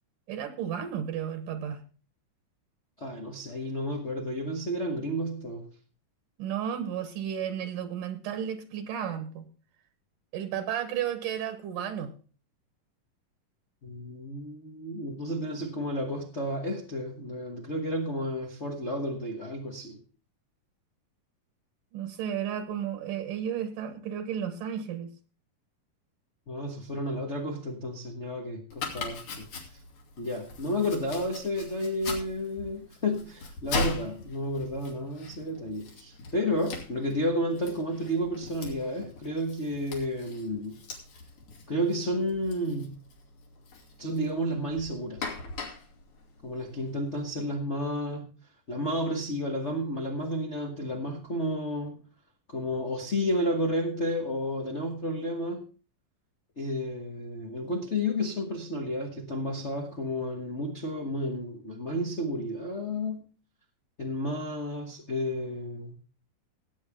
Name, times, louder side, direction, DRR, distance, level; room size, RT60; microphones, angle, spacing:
voice 1, 0.3-1.8 6.4-9.5 10.3-12.1 21.9-25.1, right 9 dB, 80° right, 8 dB, 2.8 m, -33 dB
voice 2, 3.0-5.7 13.8-20.0 26.5-29.5 30.2-40.8 41.7-42.9 44.0-45.3 46.4-48.3 48.7-52.0 52.5-55.6 56.6-63.2 64.0-65.9, equal, 85° left, 1 dB, 0.6 m, -31 dB
Domestic sounds home sounds, 28.7-47.2, left 3 dB, 65° left, 3.9 m, -40 dB
17.0 x 8.7 x 3.6 m, 0.37 s
omnidirectional pair, 3.8 m